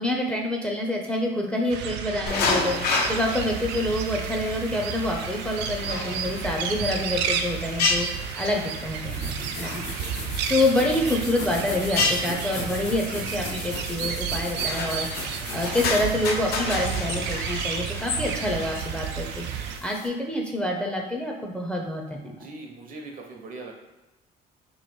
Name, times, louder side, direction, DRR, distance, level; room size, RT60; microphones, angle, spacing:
voice 1, 0.0-8.1 8.4-9.8 10.1-15.1 15.5-19.4 19.8-22.5, left 1 dB, 5° left, 0 dB, 0.5 m, -27 dB
sound 1, 1.7-19.8, right 7 dB, 90° right, 0.4 m, -32 dB
sound 2, 2.3-20.1, left 3 dB, 70° left, 0.6 m, -32 dB
sound 3, 8.9-17.2, left 3 dB, 85° left, 1.0 m, -37 dB
voice 2, 22.4-23.7, right 3 dB, 55° right, 2 dB, 0.8 m, -40 dB
3.1 x 2.5 x 4.3 m, 1.0 s
cardioid pair, 110°, 17 cm